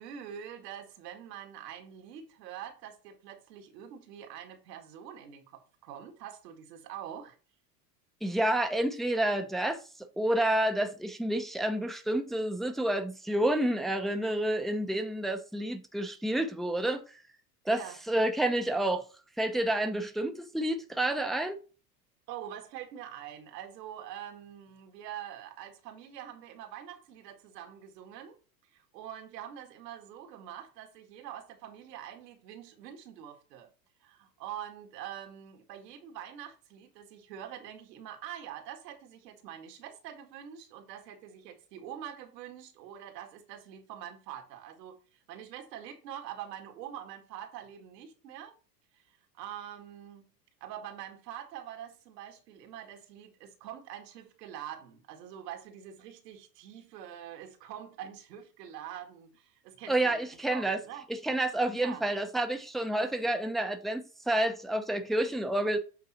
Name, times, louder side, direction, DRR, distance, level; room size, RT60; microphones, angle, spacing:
voice 1, 0.0-7.4 17.7-18.0 22.3-28.4 28.7-33.7 34.0-45.0 45.3-48.5 48.9-49.0 49.3-50.2 50.6-60.2 60.5-61.1 61.7-62.0, right 10 dB, 75° right, 2.0 m, -45 dB
voice 2, 8.2-9.8 10.2-17.0 17.6-19.0 19.4-21.6 59.9-60.8 61.2-65.8, right 1 dB, ahead, 0.8 m, -29 dB
8.3 x 3.7 x 4.2 m
hypercardioid pair, 110°, 49 cm